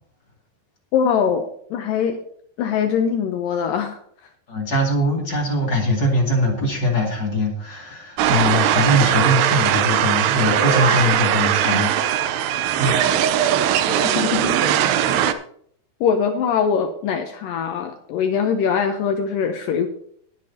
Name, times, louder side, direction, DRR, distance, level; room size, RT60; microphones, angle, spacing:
voice 1, 0.9-2.2 2.6-4.0 13.9-14.6 16.0-19.9, left 7 dB, 80° left, 6 dB, 2.0 m, -22 dB
voice 2, 4.5-12.5 12.8-13.1, left 1 dB, 35° left, -1 dB, 2.3 m, -22 dB
sound 1, 8.2-15.3, right 10 dB, 90° right, 2.8 m, -20 dB
Piano, 10.3-11.1, right 2 dB, 35° right, 1.9 m, -24 dB
19.5 x 8.2 x 2.8 m, 0.63 s
omnidirectional pair, 4.8 m